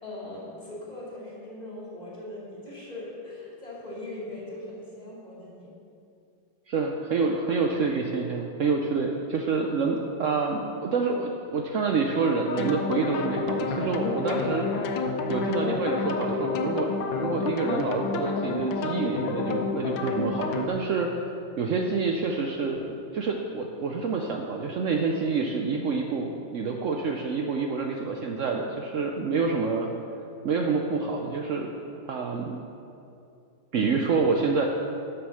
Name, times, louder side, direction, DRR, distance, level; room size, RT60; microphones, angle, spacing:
voice 1, 0.0-5.8 29.1-29.4, left 1 dB, 20° left, -6 dB, 2.5 m, -40 dB
voice 2, 6.7-15.0 15.3-16.9 17.2-21.1 21.6-29.9 30.4-31.7 32.1-32.6 33.7-34.7, right 4 dB, 80° right, 1 dB, 0.6 m, -27 dB
sound 1, 12.5-20.7, left 4 dB, 75° left, 1.4 m, -29 dB
9.6 x 6.4 x 6.2 m, 2.6 s
omnidirectional pair, 2.1 m